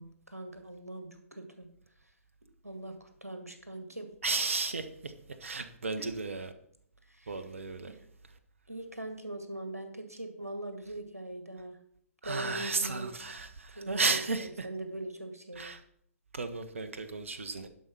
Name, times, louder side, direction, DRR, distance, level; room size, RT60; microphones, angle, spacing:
voice 1, 0.0-1.7 2.6-4.1 6.0-6.1 7.1-7.4 7.8-8.0 8.7-11.8 12.2-13.1 13.8-15.7, right 1 dB, 85° right, 6 dB, 2.0 m, -41 dB
voice 2, 4.2-5.1 5.4-6.5 7.3-7.9 12.2-14.7 15.6-15.8 16.3-17.7, right 4 dB, 60° right, 9 dB, 1.1 m, -33 dB
11.5 x 5.4 x 6.1 m, 0.68 s
figure-of-eight pair, 130°, 8 cm